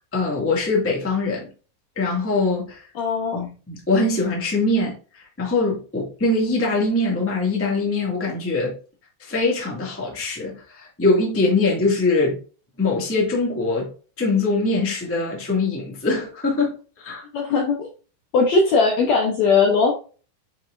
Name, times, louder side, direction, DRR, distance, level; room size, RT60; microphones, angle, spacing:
voice 1, 0.0-1.5 1.9-2.8 3.3-8.8 9.2-12.4 12.8-13.9 14.2-17.2, left 3 dB, 5° left, 1.1 m, -22 dB
voice 2, 3.0-3.4 17.3-17.9 18.3-19.9, left 4 dB, 70° left, 1.8 m, -19 dB
8.9 x 4.3 x 2.6 m
omnidirectional pair, 4.1 m